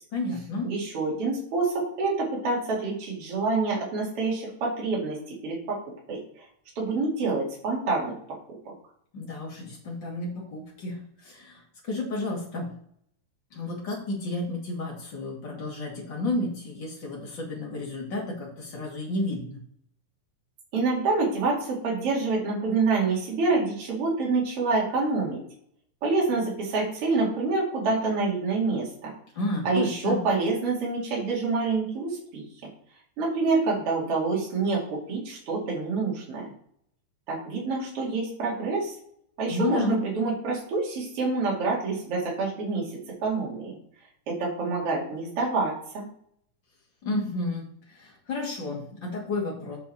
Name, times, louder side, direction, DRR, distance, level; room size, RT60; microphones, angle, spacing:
voice 1, 0.1-0.7 9.1-12.7 13.5-19.6 29.4-30.2 39.5-40.0 47.0-49.8, left 2 dB, 40° left, -3 dB, 2.9 m, -31 dB
voice 2, 0.6-5.8 6.1-6.4 6.8-8.1 20.7-25.4 26.0-29.1 29.6-32.4 33.2-36.5 37.3-38.9 39.4-42.9 43.2-43.8 44.3-46.1, right 3 dB, 50° right, -4 dB, 3.3 m, -27 dB
8.7 x 5.7 x 4.3 m, 0.65 s
omnidirectional pair, 3.5 m